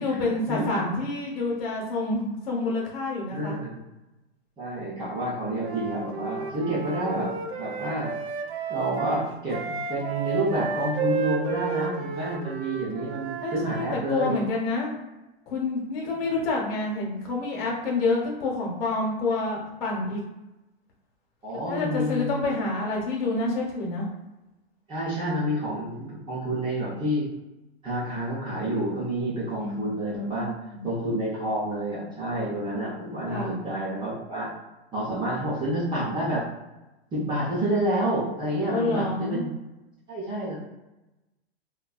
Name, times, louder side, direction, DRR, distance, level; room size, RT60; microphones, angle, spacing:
voice 1, 0.0-3.6 13.4-15.0 15.5-20.2 21.7-24.1 29.6-30.5 30.7-30.9 33.3-33.6 38.7-39.5, left 3 dB, 60° left, -2 dB, 1.0 m, -28 dB
voice 2, 3.3-3.8 4.6-8.2 8.7-14.4 16.2-16.3 21.4-22.8 24.9-27.3 27.8-30.5 30.8-34.5 34.9-36.5 37.1-39.5 40.1-40.6, right 1 dB, 15° right, -8 dB, 0.6 m, -29 dB
Wind instrument woodwind instrument, 5.6-13.6, right 6 dB, 70° right, 0.5 m, -32 dB
2.6 x 2.3 x 2.3 m, 1.0 s
hypercardioid pair, 145°, 32 cm